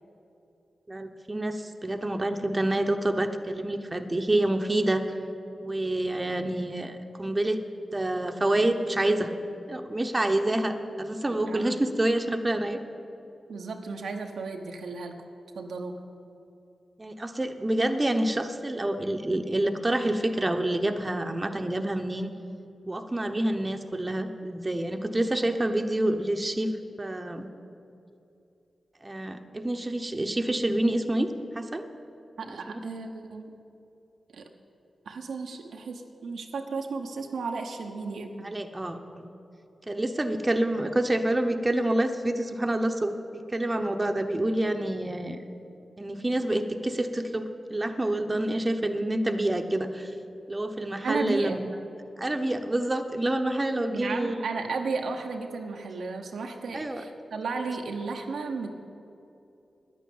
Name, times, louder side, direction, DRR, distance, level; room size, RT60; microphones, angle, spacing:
voice 1, 0.9-5.2 5.6-7.6 7.9-9.3 9.7-12.8 17.0-22.3 22.9-26.7 27.0-27.5 29.0-31.3 31.5-31.9 32.5-32.8 38.4-39.3 39.9-45.4 46.0-50.2 50.5-51.7 52.2-54.4 56.7-57.0, right 1 dB, 30° right, 5 dB, 1.0 m, -27 dB
voice 2, 11.5-11.8 13.5-15.1 15.5-16.0 32.4-33.5 34.3-34.5 35.1-38.5 51.0-51.6 53.9-58.7, right 4 dB, 85° right, 3 dB, 0.9 m, -34 dB
10.0 x 9.3 x 8.6 m, 2.7 s
cardioid pair, 40°, 0 cm